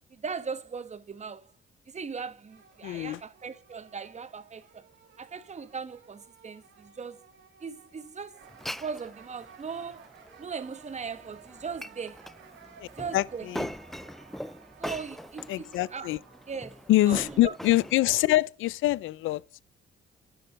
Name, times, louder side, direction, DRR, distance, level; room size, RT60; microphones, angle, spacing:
voice 1, 0.1-1.5 1.9-4.9 5.2-7.2 7.6-8.4 8.8-10.1 10.4-12.2 12.8-13.5 14.8-16.1 16.5-16.8 17.1-17.5, right 5 dB, 35° right, 1.3 m, -39 dB
sound 1, 2.5-17.9, right 7 dB, 75° right, 3.7 m, -56 dB
voice 2, 2.8-3.2 12.8-13.7 15.5-16.2 16.9-19.6, left 16 dB, 85° left, 0.6 m, -25 dB
Glass, 8.4-18.4, equal, ahead, 0.4 m, -42 dB
11.5 x 6.9 x 5.0 m
cardioid pair, 90°, 20 cm